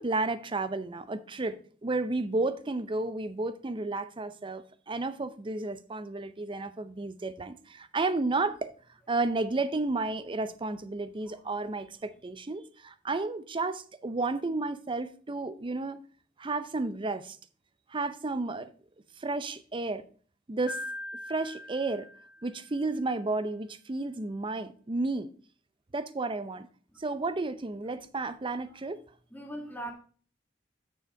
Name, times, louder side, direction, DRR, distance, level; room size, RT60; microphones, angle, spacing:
voice 1, 0.0-8.7 9.1-16.0 16.4-17.4 17.9-18.7 19.2-20.0 20.5-20.8 21.3-22.1 22.4-25.3 25.9-26.7 27.0-29.0, right 3 dB, 25° right, 0.5 m, -32 dB
Piano, 20.7-22.8, left 1 dB, 50° left, 2.8 m, -41 dB
voice 2, 29.3-29.9, right 1 dB, 10° left, 1.6 m, -40 dB
6.7 x 6.4 x 4.7 m
head